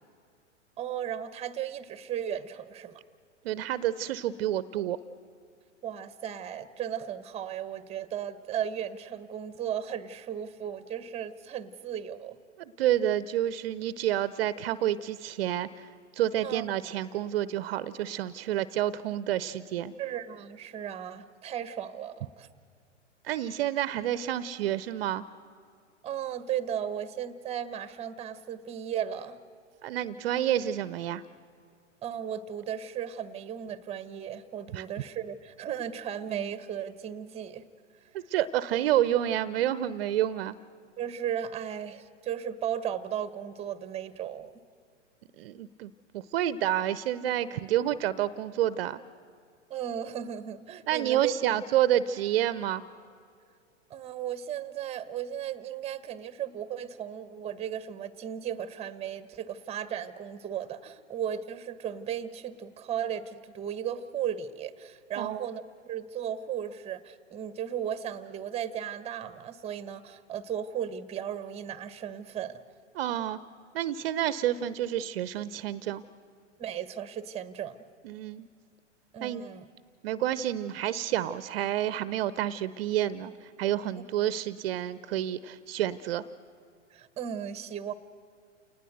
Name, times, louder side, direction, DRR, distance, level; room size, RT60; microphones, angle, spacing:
voice 1, 0.8-3.0 5.8-12.4 16.4-16.6 20.0-22.5 26.0-29.4 32.0-37.6 41.0-44.5 49.7-51.3 53.9-72.6 76.6-77.8 79.1-79.7 84.0-84.1 86.9-87.9, right 9 dB, 15° right, 15 dB, 1.2 m, -35 dB
voice 2, 3.4-5.0 12.8-19.9 23.2-25.2 29.8-31.2 34.7-34.8 38.1-40.6 45.4-49.0 50.9-52.8 65.2-65.4 72.9-73.4 73.7-76.0 78.0-78.5 79.2-79.4 80.0-86.2, right 12 dB, 50° right, 16 dB, 0.8 m, -29 dB
29.0 x 19.5 x 7.9 m, 2.3 s
figure-of-eight pair, 110°, 37 cm